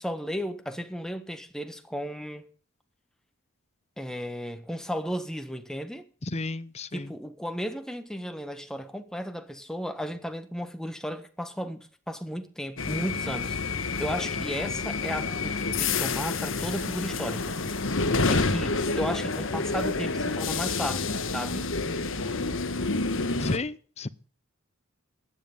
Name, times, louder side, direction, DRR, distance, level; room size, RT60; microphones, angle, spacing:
voice 1, 0.0-2.4 4.0-6.1 6.9-17.5 18.3-21.7, equal, 5° left, 1.4 m, -34 dB
voice 2, 6.2-7.1 23.4-24.1, left 2 dB, 30° left, 0.7 m, -32 dB
sound 1, 12.8-23.6, left 3 dB, 65° left, 1.4 m, -28 dB
15.0 x 9.7 x 5.4 m
head